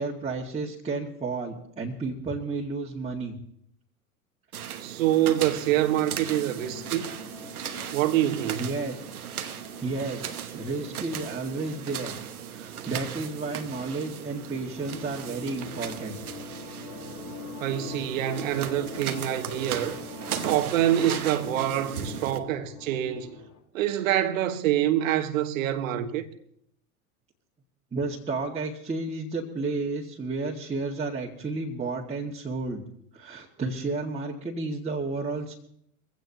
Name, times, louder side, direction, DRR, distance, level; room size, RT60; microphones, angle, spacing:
voice 1, 0.0-3.4 8.6-9.2 9.8-12.2 12.5-16.2 27.9-32.8 33.1-35.5, right 3 dB, 15° right, 1.9 m, -32 dB
sound 1, 4.5-22.4, right 9 dB, 75° right, 1.1 m, -37 dB
voice 2, 4.8-7.1 7.9-8.6 17.6-20.0 20.4-23.4 23.7-26.3, right 12 dB, 60° right, 1.4 m, -26 dB
sound 2, 5.2-23.6, left 6 dB, 40° left, 3.0 m, -45 dB
22.5 x 16.0 x 2.9 m
figure-of-eight pair, 85°, 44 cm